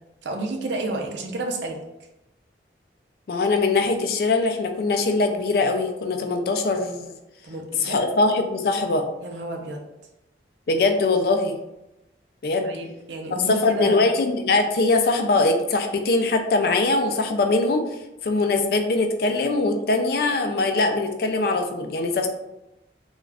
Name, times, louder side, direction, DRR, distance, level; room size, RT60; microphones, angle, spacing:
voice 1, 0.2-1.8 7.4-8.0 9.2-9.8 12.6-14.0, right 2 dB, 80° right, 3 dB, 0.5 m, -30 dB
voice 2, 3.3-7.1 7.8-9.0 10.7-11.6 12.4-12.7 13.5-17.8 18.2-22.3, left 3 dB, 55° left, 5 dB, 0.3 m, -22 dB
2.4 x 2.3 x 3.3 m, 0.92 s
head